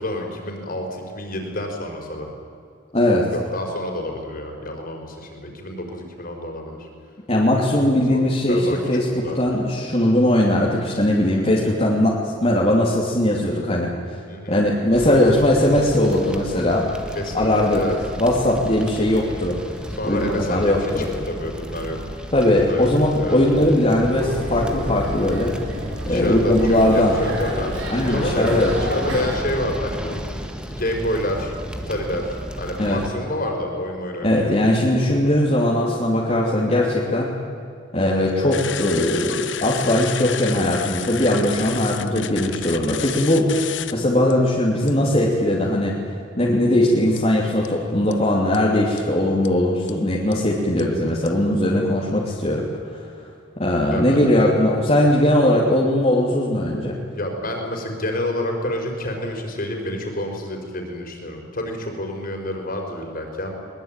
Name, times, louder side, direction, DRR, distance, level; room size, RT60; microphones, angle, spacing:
voice 1, 0.0-2.3 3.3-6.9 8.1-8.2 8.5-8.8 9.1-9.4 14.3-14.6 17.1-18.0 19.9-22.0 22.6-22.9 23.2-23.4 26.0-30.2 30.7-31.5 31.9-35.0 53.9-54.3 57.1-63.5, left 1 dB, 45° left, 3 dB, 4.9 m, -28 dB
voice 2, 2.9-3.3 7.3-13.9 14.5-16.9 17.3-17.8 18.2-19.6 20.0-21.1 22.3-25.5 26.1-27.2 27.9-28.7 32.8-33.0 34.2-37.3 37.9-46.0 46.4-52.7 53.6-57.0, left 1 dB, 30° left, -4 dB, 2.9 m, -19 dB
sound 1, 14.9-33.1, equal, 5° right, 1.7 m, -34 dB
sound 2, 24.1-29.4, equal, 85° right, 6.6 m, -30 dB
sound 3, 38.5-43.9 44.3-44.4 44.9-45.1 47.2-47.3 47.6-47.7 48.1-48.2 48.5-48.6 49.0-49.1 49.4-49.5 49.9-50.0 50.3-50.4 50.8-50.9 51.3-51.4, left 10 dB, 65° left, 1.1 m, -31 dB
22.5 x 21.0 x 9.1 m, 2.5 s
head